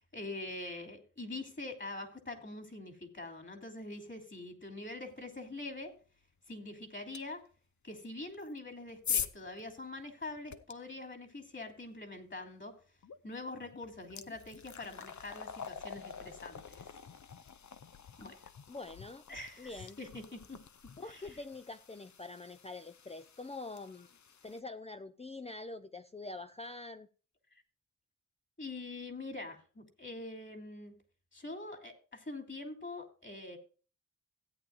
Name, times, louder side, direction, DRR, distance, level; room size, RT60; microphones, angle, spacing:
voice 1, 0.0-5.9 6.5-7.4 7.8-12.7 13.2-16.8 18.2-18.4 19.3-20.6 21.1-21.4 28.6-30.9 31.3-33.6, left 2 dB, 35° left, 2.9 m, -44 dB
sound 1, 7.1-7.2 8.3-10.7 13.0-13.2 13.6-24.6, left 7 dB, 60° left, 0.8 m, -44 dB
voice 2, 18.7-19.2 19.6-20.0 21.0-24.1 24.4-27.1, left 3 dB, 20° left, 0.6 m, -45 dB
16.5 x 8.9 x 2.4 m
cardioid pair, 70°, 33 cm